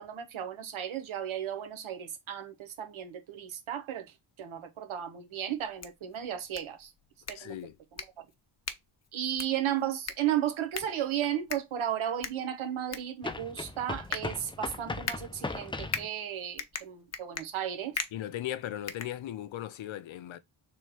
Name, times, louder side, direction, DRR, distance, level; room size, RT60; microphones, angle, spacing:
voice 1, 0.0-6.9 7.3-7.6 7.9-8.2 9.1-18.0, right 10 dB, 75° right, 1.1 m, -34 dB
sound 1, 5.6-19.7, left 6 dB, 30° left, 0.8 m, -42 dB
voice 2, 7.3-7.8 18.1-20.4, left 12 dB, 65° left, 0.7 m, -37 dB
sound 2, 10.8-10.9 13.2-16.1, left 3 dB, 10° left, 0.4 m, -38 dB
3.3 x 3.2 x 4.6 m
cardioid pair, 85°, 50 cm